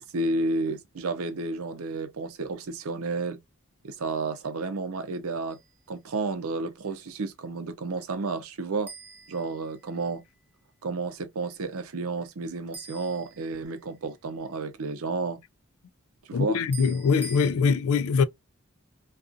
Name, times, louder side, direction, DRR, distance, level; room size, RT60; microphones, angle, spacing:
voice 1, 0.1-3.4 3.8-5.6 5.9-8.9 9.3-10.2 10.8-15.4 16.3-16.6, right 3 dB, 85° right, 0.6 m, -31 dB
sound 1, 5.5-5.9 8.9-10.2 12.7-14.0 16.7-17.5, right 2 dB, 10° right, 0.6 m, -45 dB
voice 2, 16.3-18.2, left 5 dB, 85° left, 0.3 m, -23 dB
2.5 x 2.3 x 2.3 m
head